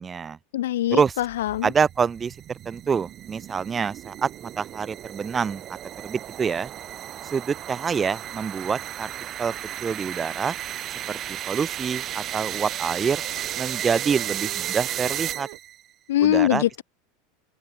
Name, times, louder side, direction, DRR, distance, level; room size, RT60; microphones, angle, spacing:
voice 1, 0.0-0.4 0.9-1.2 1.6-2.4 2.7-5.6 6.0-6.7 7.3-9.1 9.4-9.5 9.8-10.6 11.1-13.2 13.6-15.5 16.2-16.6, right 6 dB, 25° right, 0.5 m, -26 dB
voice 2, 0.5-1.7 16.1-16.8, left 13 dB, 85° left, 0.6 m, -22 dB
sound 1, 1.2-15.8, right 12 dB, 40° right, 3.3 m, -34 dB
sound 2, 10.9-15.6, right 40 dB or more, 65° right, 8.0 m, -44 dB
supercardioid pair, 115°, 0 cm